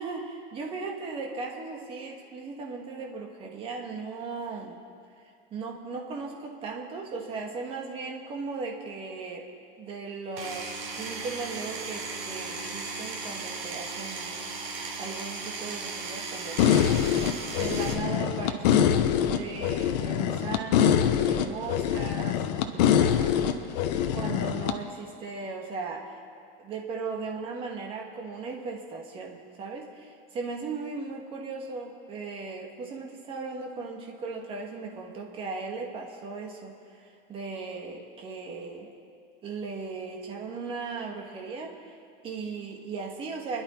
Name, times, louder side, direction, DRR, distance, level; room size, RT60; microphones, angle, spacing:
voice 1, 0.0-4.8 5.2-9.5 9.8-14.4 15.0-23.5 23.9-26.2 26.6-38.9 39.4-41.9 42.2-43.6, right 4 dB, 20° right, 0 dB, 1.5 m, -37 dB
Power tool, 10.4-17.9, right 4 dB, 70° right, 3.4 m, -36 dB
sound 1, 16.6-24.7, left 9 dB, 45° left, 0.9 m, -24 dB
29.5 x 11.0 x 4.4 m, 2.3 s
supercardioid pair, 175°, 30 cm